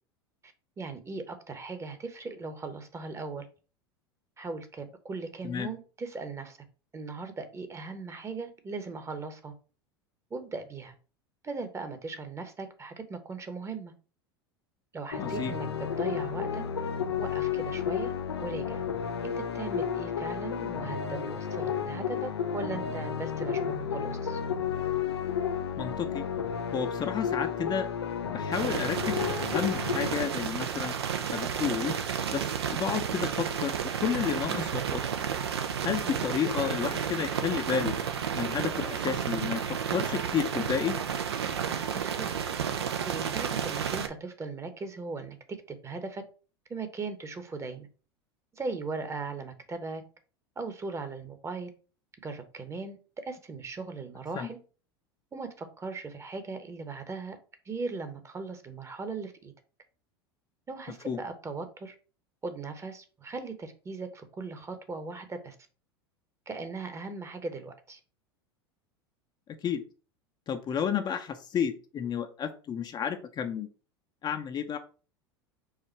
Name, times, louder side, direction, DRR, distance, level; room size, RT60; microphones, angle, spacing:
voice 1, 0.4-3.5 4.4-6.6 6.9-9.5 10.3-10.9 11.4-13.9 14.9-15.7 16.0-16.6 17.2-18.8 19.2-24.4 36.0-36.2 41.9-42.3 43.0-46.2 46.7-47.9 48.5-50.0 50.6-51.7 52.2-54.6 55.3-57.4 57.6-59.5 60.7-61.9 62.4-65.5 66.5-68.0, right 4 dB, 20° right, 8 dB, 0.9 m, -38 dB
sound 1, 15.1-30.1, left 7 dB, 90° left, 0.5 m, -32 dB
voice 2, 15.2-15.5 25.8-26.3 26.7-27.9 28.3-30.9 31.3-31.9 32.3-33.7 34.0-35.0 35.8-37.9 38.3-41.0 54.3-54.5 61.1-61.2 69.6-69.8 70.5-73.7 74.2-74.8, left 8 dB, 30° left, 7 dB, 0.6 m, -31 dB
sound 2, 28.5-44.1, right 7 dB, 80° right, 0.6 m, -31 dB
4.8 x 2.5 x 4.4 m, 0.37 s
hypercardioid pair, 85°, 13 cm